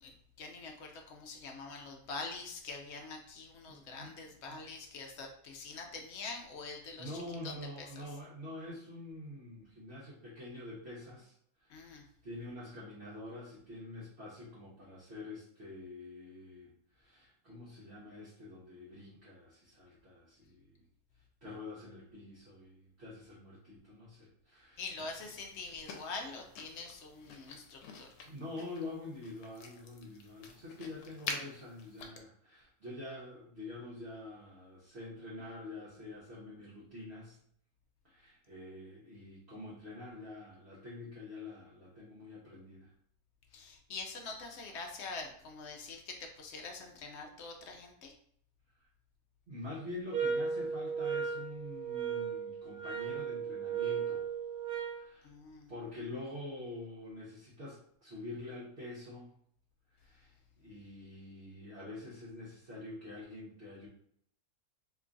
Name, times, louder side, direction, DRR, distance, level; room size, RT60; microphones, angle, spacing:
voice 1, 0.4-7.1 7.4-7.5 8.0-8.1 11.7-12.0 24.8-28.1 43.5-48.1 55.2-55.7, left 3 dB, 65° left, 3 dB, 0.7 m, -44 dB
voice 2, 3.7-4.1 4.5-4.6 7.0-12.0 12.2-20.8 21.4-25.1 28.2-37.4 38.0-42.9 49.5-54.3 54.8-55.3 55.7-59.3 59.9-63.9, left 2 dB, 50° right, -8 dB, 1.1 m, -46 dB
sound 1, 25.4-32.1, left 4 dB, 85° left, 1.1 m, -47 dB
sound 2, 50.1-55.1, right 6 dB, 85° right, 1.1 m, -36 dB
3.0 x 2.3 x 3.7 m, 0.67 s
omnidirectional pair, 1.6 m